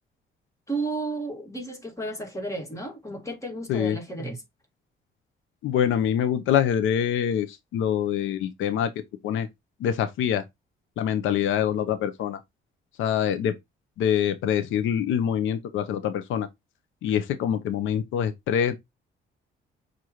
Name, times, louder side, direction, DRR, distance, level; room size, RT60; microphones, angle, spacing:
voice 1, 0.7-4.4, right 2 dB, 15° left, 1.7 m, -33 dB
voice 2, 5.6-8.9 9.2-9.5 9.8-10.4 11.0-12.4 13.0-13.5 14.0-16.5 17.0-18.8, left 9 dB, 85° left, 0.6 m, -25 dB
6.4 x 2.5 x 2.9 m
cardioid pair, 90°, 20 cm